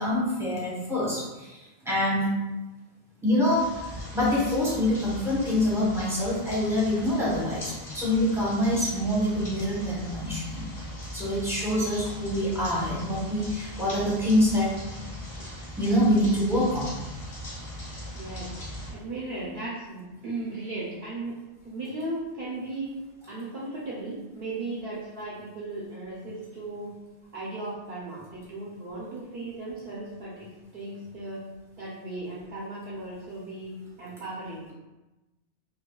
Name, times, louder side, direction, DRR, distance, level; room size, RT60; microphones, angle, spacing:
voice 1, 0.0-1.6 1.8-2.3 3.2-3.9 4.1-10.6 11.1-14.7 15.8-16.9, left 1 dB, 5° right, -7 dB, 1.0 m, -25 dB
sound 1, 3.4-18.9, left 1 dB, 60° left, 1.7 m, -39 dB
voice 2, 18.1-18.5 18.9-21.3 21.6-22.9 23.3-26.9 27.3-30.5 30.7-31.4 31.7-33.7 34.0-34.7, right 2 dB, 60° right, -6 dB, 1.0 m, -36 dB
4.8 x 2.2 x 2.3 m, 1.1 s
omnidirectional pair, 1.1 m